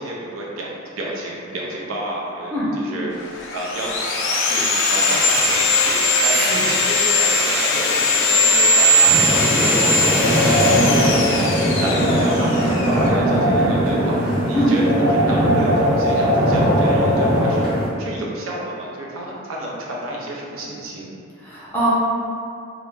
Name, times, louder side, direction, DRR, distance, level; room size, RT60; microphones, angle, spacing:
voice 1, 0.0-3.2 3.5-9.2 9.5-21.2, right 1 dB, 75° right, -3 dB, 0.5 m, -30 dB
Sawing, 3.2-13.1, left 1 dB, 65° left, 0.4 m, -19 dB
voice 2, 6.3-6.6 14.5-14.7 21.4-21.9, equal, 10° left, -9 dB, 0.6 m, -23 dB
sound 1, 9.0-17.9, equal, 45° right, 1.0 m, -19 dB
2.4 x 2.1 x 3.2 m, 2.4 s
head